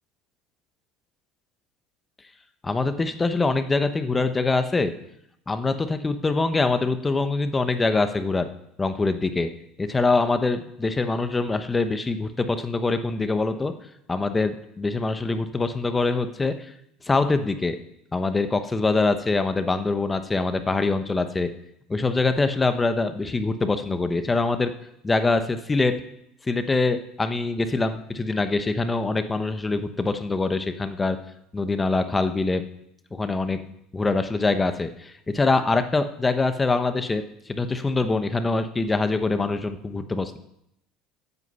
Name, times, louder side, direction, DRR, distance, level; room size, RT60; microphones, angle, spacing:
voice 1, 2.6-4.9 5.5-8.5 8.8-9.5 9.8-13.7 14.1-16.7 17.0-17.8 18.1-21.5 21.9-24.7 25.0-25.9 26.5-31.2 31.5-32.6 33.1-33.6 33.9-40.4, left 3 dB, 15° left, 9 dB, 1.0 m, -24 dB
13.5 x 8.2 x 5.5 m, 0.78 s
supercardioid pair, 115°, 0 cm